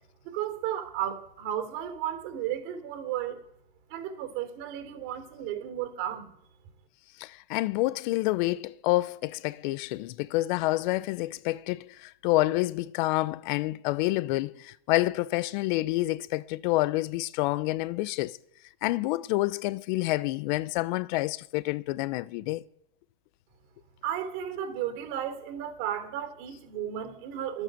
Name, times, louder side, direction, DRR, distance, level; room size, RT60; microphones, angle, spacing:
voice 1, 0.2-3.4 3.9-6.3 24.0-27.6, right 10 dB, 55° right, 3.3 m, -34 dB
voice 2, 7.2-18.4 18.8-22.6, left 19 dB, 55° left, 0.7 m, -28 dB
12.0 x 8.9 x 7.6 m
supercardioid pair, 130°, 29 cm